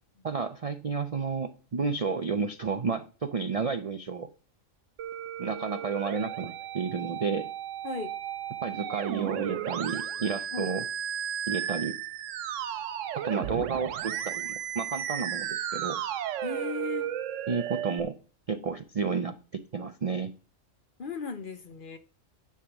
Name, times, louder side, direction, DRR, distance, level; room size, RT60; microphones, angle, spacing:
voice 1, 0.2-4.3 5.4-7.5 8.6-10.9 11.5-12.0 13.2-16.0 17.5-18.2 18.5-20.3, right 5 dB, 60° right, 0.3 m, -31 dB
Musical instrument, 5.0-18.0, right 10 dB, 75° right, 1.0 m, -34 dB
voice 2, 16.4-17.1 21.0-22.0, left 5 dB, 50° left, 0.8 m, -36 dB
10.0 x 3.6 x 6.9 m
omnidirectional pair, 1.4 m